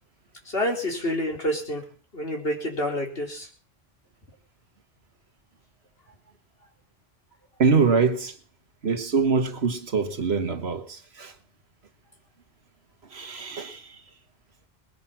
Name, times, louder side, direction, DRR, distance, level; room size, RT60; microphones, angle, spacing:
voice 1, 0.5-1.8 2.1-3.5, equal, 70° left, 4.4 m, -28 dB
voice 2, 7.6-8.3 8.8-11.3 13.1-14.0, right 5 dB, 90° right, 1.8 m, -24 dB
20.5 x 10.5 x 5.8 m
omnidirectional pair, 1.1 m